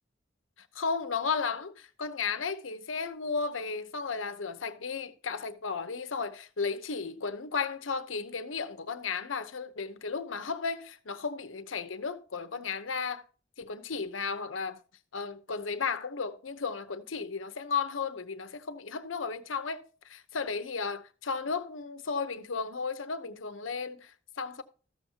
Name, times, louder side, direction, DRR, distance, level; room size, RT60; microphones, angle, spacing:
voice 1, 0.7-13.2 13.6-14.8 15.1-24.6, left 5 dB, 90° left, 0.9 m, -34 dB
13.5 x 7.2 x 2.8 m
head